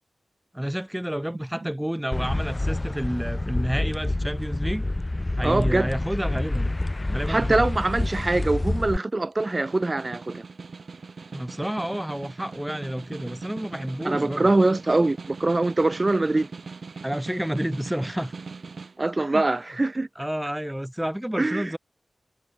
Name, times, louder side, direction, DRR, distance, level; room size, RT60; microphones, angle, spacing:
voice 1, 0.5-4.8 5.4-6.8 7.0-7.6 11.3-14.5 17.0-18.3 19.2-19.4 20.2-21.8, equal, 5° right, 2.0 m, -30 dB
sound 1, 2.1-9.0, left 2 dB, 25° left, 2.5 m, -27 dB
voice 2, 5.4-5.9 7.3-10.4 14.0-16.5 19.0-20.1 21.4-21.7, right 2 dB, 35° right, 1.4 m, -23 dB
Snare drum, 9.3-19.0, right 4 dB, 65° right, 3.8 m, -40 dB
wide cardioid pair, 70°, 0 cm